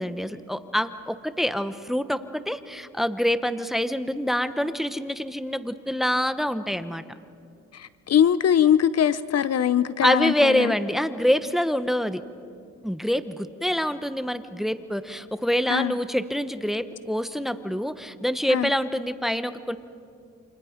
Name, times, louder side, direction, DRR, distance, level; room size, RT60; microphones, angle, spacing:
voice 1, 0.0-7.0 10.0-12.2 12.8-19.8, equal, ahead, 12 dB, 1.0 m, -26 dB
voice 2, 7.7-10.7 15.7-15.9 18.5-18.7, left 9 dB, 50° left, 15 dB, 0.8 m, -22 dB
29.5 x 27.0 x 5.2 m, 2.4 s
cardioid pair, 85°, 32 cm